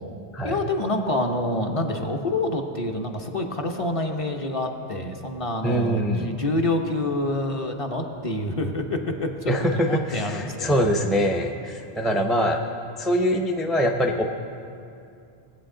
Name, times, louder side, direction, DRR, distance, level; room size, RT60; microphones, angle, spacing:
voice 1, 0.4-10.9, left 1 dB, 35° left, 3 dB, 0.8 m, -27 dB
voice 2, 5.6-6.4 9.5-12.7 13.0-14.2, equal, ahead, 2 dB, 0.4 m, -23 dB
19.5 x 8.2 x 3.8 m, 2.6 s
omnidirectional pair, 1.0 m